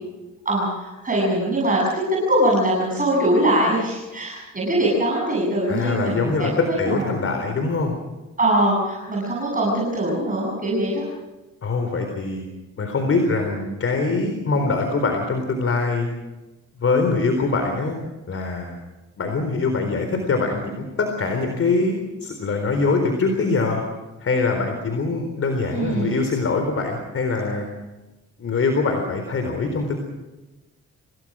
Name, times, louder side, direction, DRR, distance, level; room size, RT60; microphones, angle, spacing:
voice 1, 0.4-7.2 8.4-11.1 25.7-26.2, right 1 dB, 25° right, -3 dB, 7.8 m, -22 dB
voice 2, 5.7-7.9 11.6-12.5 12.8-16.1 16.8-18.0 18.3-18.8 19.2-23.8 24.2-27.7 28.4-30.0, left 3 dB, 50° left, 4 dB, 4.1 m, -23 dB
27.0 x 18.5 x 6.3 m, 1.1 s
cardioid pair, 90°, 30 cm